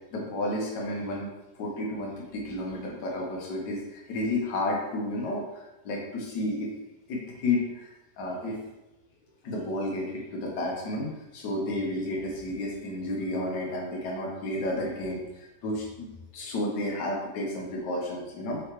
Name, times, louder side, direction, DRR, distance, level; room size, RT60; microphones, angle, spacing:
voice 1, 0.1-1.3 1.6-6.7 7.1-7.9 8.2-8.6 9.4-16.1 16.3-18.6, left 1 dB, 80° left, -1 dB, 1.6 m, -31 dB
4.4 x 3.8 x 3.0 m, 0.96 s
omnidirectional pair, 1.8 m